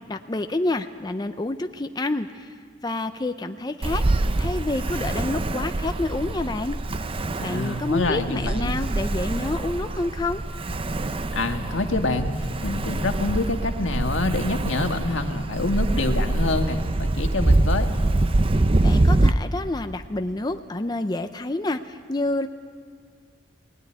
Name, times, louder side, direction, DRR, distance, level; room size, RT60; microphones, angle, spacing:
voice 1, 0.1-2.5 2.8-4.0 4.4-6.8 7.4-10.4 18.8-22.5, left 2 dB, 20° left, 7 dB, 0.5 m, -28 dB
Ocean, 3.8-19.3, right 2 dB, 30° right, 0.6 m, -24 dB
voice 2, 7.4-8.7 11.3-17.9, left 2 dB, 85° left, 5 dB, 1.6 m, -26 dB
19.0 x 17.0 x 10.0 m, 2.1 s
head